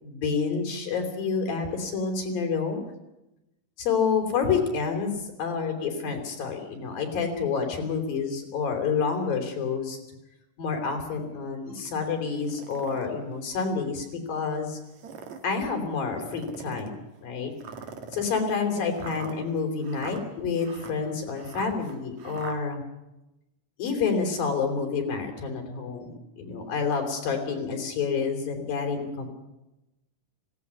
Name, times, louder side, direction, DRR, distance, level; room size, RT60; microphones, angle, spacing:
voice 1, 0.0-2.8 3.8-10.0 10.6-14.8 15.4-16.9 17.2-17.5 18.1-22.8 23.8-29.3, left 5 dB, 90° left, 4 dB, 5.5 m, -28 dB
sound 1, 12.4-13.1 13.7-13.8 14.8-15.5 16.2-17.0 17.6-22.6, right 6 dB, 60° right, 3.2 m, -42 dB
19.5 x 17.0 x 9.8 m, 0.94 s
omnidirectional pair, 3.9 m